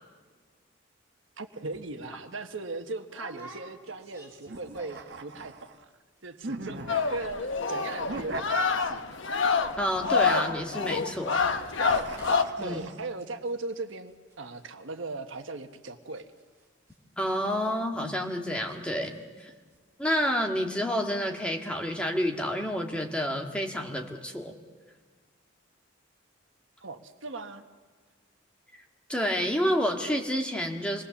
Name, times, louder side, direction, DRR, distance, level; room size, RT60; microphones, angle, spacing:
voice 1, 1.4-5.9 6.2-9.1 12.6-16.3 26.8-27.6, right 3 dB, 75° right, 7 dB, 1.3 m, -38 dB
sound 1, 1.7-1.9 2.3-2.4 3.1-5.2 5.5-5.9 6.2-6.3 6.5-6.8 7.1-9.4 9.7-18.7 19.0-19.4 19.7-19.8, right 1 dB, 15° right, 6.6 m, -52 dB
sound 2, 4.5-5.8 6.4-7.4 8.0-9.2 9.9-11.0 11.9-13.1, right 2 dB, 55° right, 1.3 m, -40 dB
sound 3, 6.9-12.4, left 5 dB, 70° left, 1.1 m, -27 dB
voice 2, 9.8-11.4 12.6-12.8 17.2-19.5 20.0-24.5 29.1-31.0, equal, 5° left, 2 dB, 1.7 m, -29 dB
26.5 x 20.0 x 7.2 m, 1.4 s
head